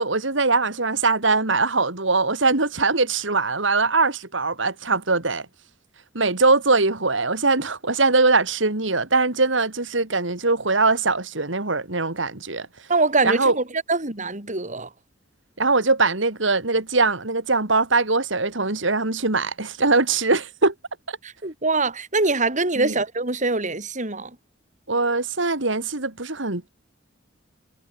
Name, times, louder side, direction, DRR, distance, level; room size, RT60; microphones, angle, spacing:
voice 1, 0.0-5.5 6.1-12.7 13.2-13.6 15.6-20.7 21.1-21.2 22.8-23.0 24.9-26.7, right 3 dB, 70° right, 3.0 m, -21 dB
voice 2, 12.9-13.6 13.9-14.9 21.2-24.3, right 3 dB, 40° right, 4.6 m, -23 dB
head